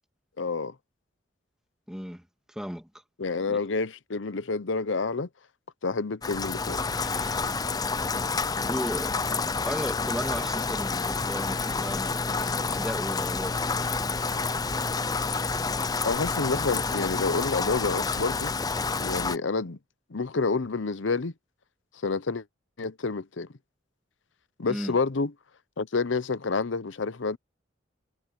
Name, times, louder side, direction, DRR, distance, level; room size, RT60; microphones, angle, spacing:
voice 1, 0.4-0.7 3.2-5.3 5.8-6.8 16.0-18.5 19.0-19.8 20.1-21.3 22.0-22.4 22.8-23.5 24.6-25.3 25.8-27.4, left 4 dB, 80° left, 0.8 m, -28 dB
voice 2, 1.9-2.9 3.3-3.6 6.8-7.4 8.7-9.2 9.7-13.9 24.7-25.0, equal, 5° right, 2.3 m, -36 dB
Rain, 6.2-19.4, left 4 dB, 20° left, 0.5 m, -29 dB
head